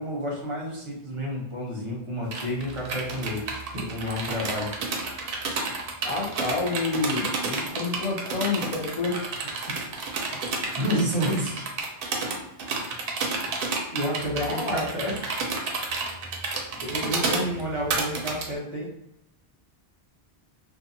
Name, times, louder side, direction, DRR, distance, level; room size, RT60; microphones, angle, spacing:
voice 1, 0.0-4.7 10.8-11.6 13.9-15.1 16.5-18.9, equal, 35° right, -3 dB, 0.7 m, -30 dB
sound 1, 2.3-18.4, right 3 dB, 65° right, 0.7 m, -30 dB
voice 2, 6.0-9.3 14.4-14.9, left 3 dB, 40° left, -1 dB, 0.6 m, -28 dB
2.6 x 2.4 x 2.5 m, 0.80 s
omnidirectional pair, 1.1 m